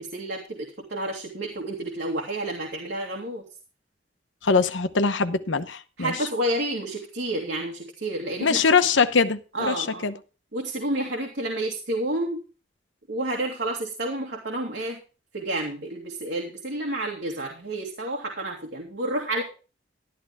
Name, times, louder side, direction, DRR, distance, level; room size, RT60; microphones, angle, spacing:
voice 1, 0.0-3.4 6.0-8.6 9.5-10.1 10.5-12.4 13.1-15.0 15.3-19.4, right 1 dB, 65° right, 2.5 m, -30 dB
voice 2, 4.4-6.1 8.4-10.1, left 5 dB, 90° left, 0.9 m, -22 dB
12.5 x 11.5 x 3.6 m
head